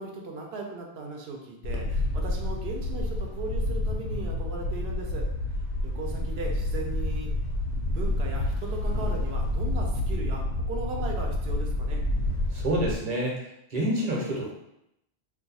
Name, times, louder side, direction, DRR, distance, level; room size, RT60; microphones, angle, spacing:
voice 1, 0.0-5.3 5.8-7.3 7.9-10.4 10.7-12.0, right 3 dB, 75° right, 0 dB, 0.9 m, -37 dB
Wind, 1.6-12.9, left 1 dB, 90° left, 0.9 m, -29 dB
voice 2, 12.5-13.4 13.7-14.5, right 1 dB, 40° right, -3 dB, 0.9 m, -27 dB
2.7 x 2.3 x 4.0 m, 0.81 s
omnidirectional pair, 1.1 m